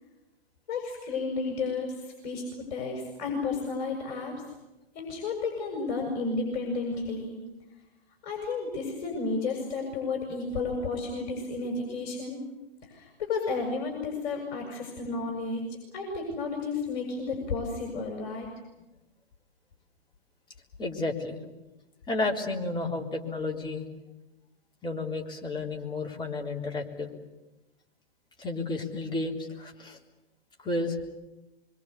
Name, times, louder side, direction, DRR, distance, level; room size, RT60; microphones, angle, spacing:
voice 1, 0.7-4.4 4.9-7.4 8.2-12.4 12.9-15.6 15.9-18.5, left 4 dB, 45° left, 1 dB, 7.5 m, -32 dB
voice 2, 20.8-21.4 22.1-23.9 24.8-27.1 28.4-30.0 30.6-31.0, left 2 dB, 15° left, 0 dB, 3.7 m, -32 dB
25.5 x 24.5 x 8.4 m, 1.0 s
hypercardioid pair, 125°, 31 cm